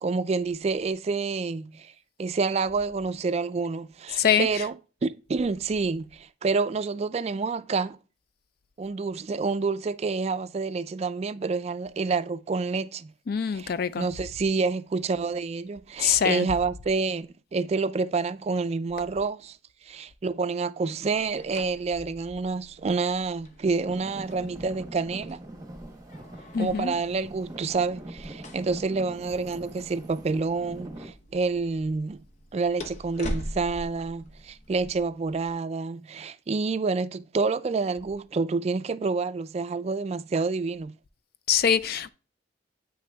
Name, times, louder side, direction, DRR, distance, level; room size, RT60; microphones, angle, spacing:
voice 1, 0.0-1.9 2.2-4.7 5.0-8.0 8.8-13.1 13.5-13.7 14.0-19.6 19.9-25.4 26.6-32.2 32.5-41.0, right 4 dB, 35° right, 0.3 m, -28 dB
voice 2, 4.2-4.5 13.3-14.1 16.0-16.5 26.5-26.9 41.5-42.1, left 8 dB, 55° left, 0.4 m, -24 dB
sound 1, 21.0-35.0, equal, 40° left, 0.8 m, -43 dB
Traffic noise roadway noise / Engine, 23.9-31.1, right 1 dB, 20° right, 1.0 m, -43 dB
8.5 x 5.9 x 2.3 m
head